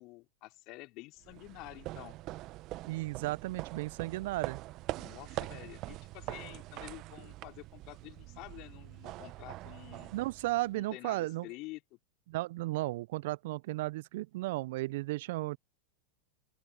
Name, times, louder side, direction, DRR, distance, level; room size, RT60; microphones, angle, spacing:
voice 1, 0.0-2.2 5.0-10.1 10.7-12.0, left 22 dB, 50° left, 3.3 m, -49 dB
sound 1, 1.2-10.9, right 18 dB, 45° right, 1.0 m, -43 dB
voice 2, 2.9-4.6 10.1-11.5 12.3-15.6, right 19 dB, 65° right, 0.4 m, -34 dB
open air
hypercardioid pair, 100°, 0 cm